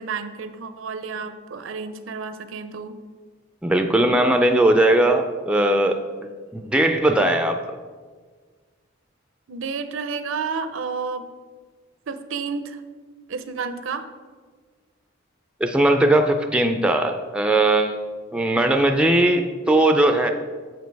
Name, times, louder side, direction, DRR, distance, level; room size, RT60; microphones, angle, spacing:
voice 1, 0.0-3.0 9.5-11.3 12.1-12.8 13.3-14.1, right 5 dB, 70° right, 10 dB, 0.5 m, -31 dB
voice 2, 3.6-6.0 6.5-7.6 15.6-18.0 18.3-20.3, right 1 dB, 5° right, 5 dB, 0.3 m, -19 dB
7.3 x 5.1 x 4.6 m, 1.5 s
head